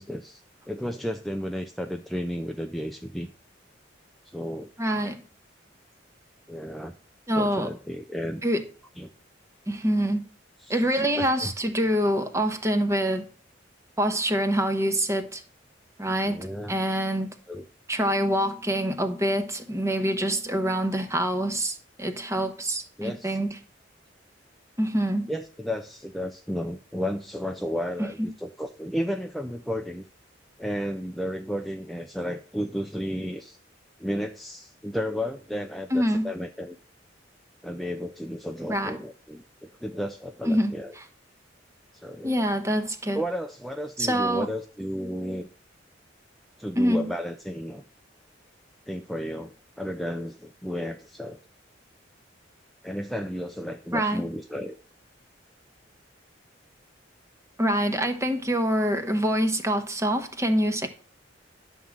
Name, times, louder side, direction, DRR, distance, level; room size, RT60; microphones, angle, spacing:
voice 1, 0.0-3.3 4.3-4.7 6.5-6.9 7.4-8.4 9.0-9.1 10.6-10.8 11.1-11.5 16.2-16.7 17.5-17.6 23.0-23.4 25.3-30.0 30.6-33.6 34.0-36.8 37.6-40.9 41.9-42.3 43.1-45.5 46.6-47.8 48.9-51.4 52.8-54.7, equal, ahead, 0.4 m, -33 dB
voice 2, 4.8-5.2 7.3-7.7 8.4-8.6 9.7-10.2 10.7-13.3 14.0-15.4 16.0-16.4 16.7-17.3 17.9-23.6 24.8-25.3 28.0-28.3 35.9-36.2 38.7-38.9 40.4-41.1 42.2-43.2 44.0-44.5 46.8-47.1 53.9-54.2 57.6-60.9, equal, 15° right, 1.0 m, -25 dB
11.0 x 3.7 x 7.3 m
head